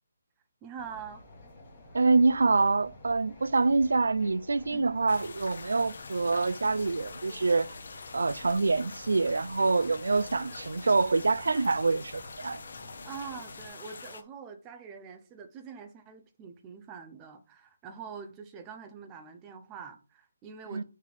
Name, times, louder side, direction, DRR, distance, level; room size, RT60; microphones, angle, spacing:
voice 1, 0.6-1.2 4.7-4.9 13.0-20.8, right 6 dB, 10° right, 0.5 m, -44 dB
sound 1, 0.8-13.7, left 1 dB, 20° left, 1.2 m, -51 dB
voice 2, 1.9-7.7 8.1-12.6 20.7-20.8, right 3 dB, 90° right, 0.3 m, -26 dB
sound 2, 5.1-14.2, left 4 dB, 45° left, 0.7 m, -45 dB
6.5 x 3.3 x 5.2 m
hypercardioid pair, 180°, 0 cm